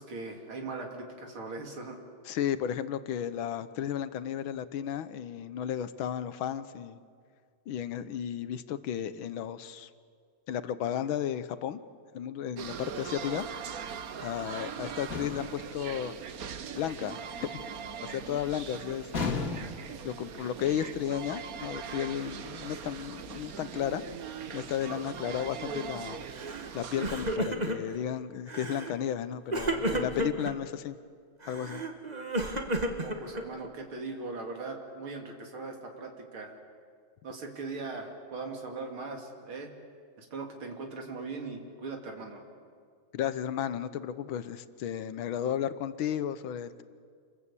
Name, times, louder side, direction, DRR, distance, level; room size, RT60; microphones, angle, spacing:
voice 1, 0.0-2.0 33.0-36.6 37.2-39.8 40.2-42.4, right 3 dB, 70° right, 3 dB, 3.4 m, -40 dB
voice 2, 2.3-7.0 7.7-9.9 10.5-11.8 12.1-13.5 14.2-16.2 16.7-17.6 18.0-19.6 20.0-24.0 24.5-26.2 26.7-31.0 31.5-31.8 43.1-46.8, left 9 dB, 70° left, 13 dB, 1.6 m, -34 dB
sound 1, 12.6-27.4, right 7 dB, 55° right, 1.1 m, -41 dB
sound 2, 15.1-15.6 19.1-19.9, left 4 dB, 40° left, 2.6 m, -33 dB
Crying sobbing, 26.4-26.7 26.9-28.0 28.5-28.9 29.5-30.5 31.4-33.7, right 1 dB, 20° right, 1.5 m, -32 dB
28.0 x 21.5 x 8.4 m, 2.1 s
omnidirectional pair, 2.4 m